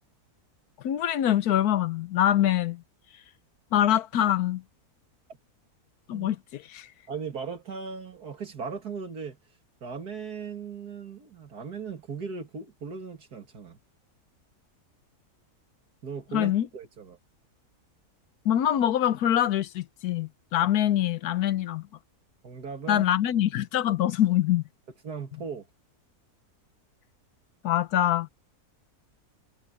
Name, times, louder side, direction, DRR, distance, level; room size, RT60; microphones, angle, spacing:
voice 1, 0.8-2.8 3.7-4.6 6.1-6.9 16.3-16.7 18.4-21.8 22.9-24.6 27.6-28.3, left 11 dB, 80° left, 1.3 m, -24 dB
voice 2, 7.1-9.4 9.8-13.8 16.0-17.2 22.4-23.1 25.0-25.7, right 5 dB, 85° right, 2.8 m, -38 dB
omnidirectional pair, 1.6 m